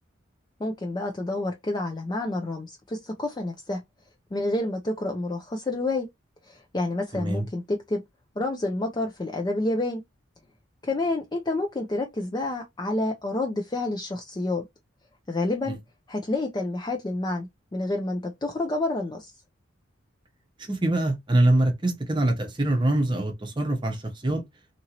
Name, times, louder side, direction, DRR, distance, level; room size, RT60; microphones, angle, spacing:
voice 1, 0.6-3.8 4.3-6.1 6.5-8.0 8.4-10.0 10.8-14.6 15.3-15.8 16.1-19.3, left 2 dB, 20° left, 0.4 m, -29 dB
voice 2, 7.1-7.4 20.7-24.4, right 1 dB, 25° right, 0.7 m, -24 dB
2.9 x 2.6 x 2.8 m
head